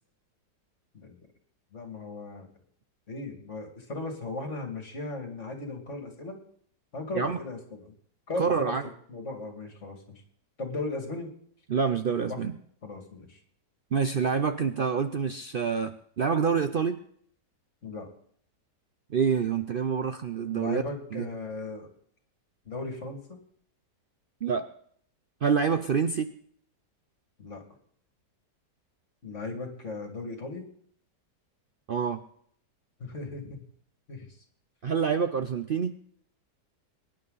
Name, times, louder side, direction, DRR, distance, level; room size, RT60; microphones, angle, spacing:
voice 1, 1.7-2.5 3.1-6.4 6.9-7.9 8.3-8.8 9.1-10.2 10.6-11.3 12.3-12.4 12.8-13.4 17.8-18.1 20.5-21.9 22.6-23.4 27.4-27.6 29.2-30.7 33.0-33.6 34.1-34.3, left 2 dB, 45° left, 4 dB, 2.8 m, -37 dB
voice 2, 8.4-8.8 11.7-12.6 13.9-17.0 19.1-20.8 21.1-21.3 24.4-24.7 25.4-26.3 31.9-32.2 34.8-35.9, right 6 dB, 90° right, 9 dB, 0.4 m, -27 dB
23.0 x 10.5 x 4.0 m, 0.62 s
omnidirectional pair, 1.8 m